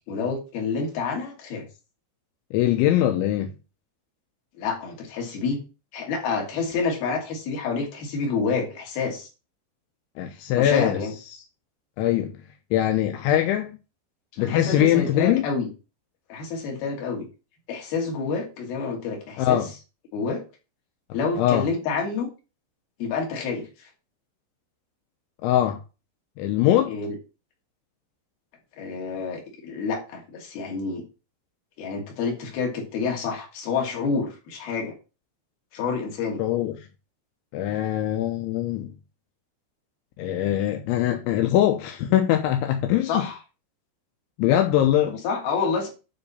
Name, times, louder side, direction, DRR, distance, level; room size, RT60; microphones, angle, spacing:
voice 1, 0.1-1.7 4.6-5.6 5.9-9.3 10.6-11.1 14.3-15.7 16.3-17.3 17.7-19.7 20.1-20.4 21.1-22.3 23.0-23.9 26.9-27.2 28.8-31.0 31.8-34.9 35.7-36.4 43.0-43.4 45.1-45.9, left 4 dB, 55° left, 4.0 m, -28 dB
voice 2, 2.5-3.5 10.2-11.0 12.0-12.4 12.7-13.8 14.4-15.5 19.4-19.7 21.4-21.7 25.4-25.8 26.4-27.0 36.4-36.8 37.5-38.9 40.2-43.3 44.4-45.2, left 12 dB, 85° left, 3.2 m, -22 dB
9.6 x 4.0 x 7.0 m
omnidirectional pair, 5.4 m